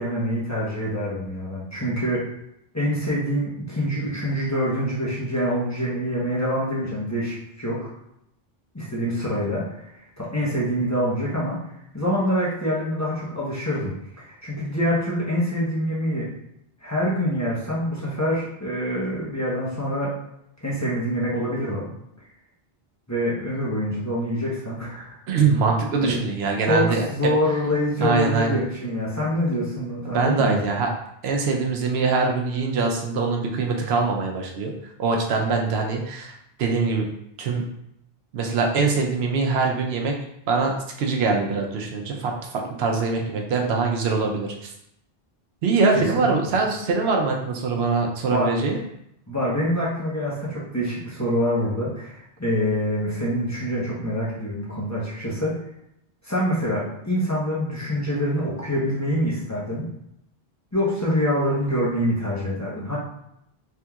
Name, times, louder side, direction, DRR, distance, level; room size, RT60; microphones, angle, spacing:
voice 1, 0.0-2.3 2.7-7.9 8.7-9.9 10.2-11.6 11.9-13.9 14.2-16.3 16.8-20.1 20.6-21.9 23.1-25.2 26.0-26.2 26.6-30.6 45.9-46.5 48.3-48.5 49.3-55.5 56.2-59.9 60.7-63.0, equal, 20° left, -8 dB, 0.7 m, -25 dB
voice 2, 25.3-27.3 28.0-28.6 30.1-30.9 31.2-37.1 37.4-37.7 38.3-40.1 40.5-44.7 45.6-48.8, right 4 dB, 85° right, 1 dB, 0.8 m, -23 dB
3.5 x 2.8 x 2.3 m, 0.77 s
omnidirectional pair, 1.0 m